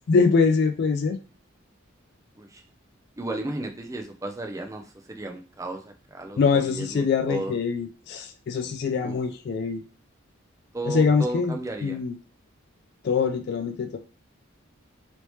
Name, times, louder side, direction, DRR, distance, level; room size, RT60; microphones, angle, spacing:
voice 1, 0.1-1.2 6.4-9.8 10.9-11.5 11.8-12.1 13.0-14.0, left 5 dB, 55° left, 8 dB, 0.3 m, -23 dB
voice 2, 3.2-4.8 5.1-7.6 9.0-9.2 10.7-12.0, right 1 dB, 15° right, 4 dB, 0.4 m, -34 dB
3.1 x 2.8 x 3.1 m, 0.34 s
head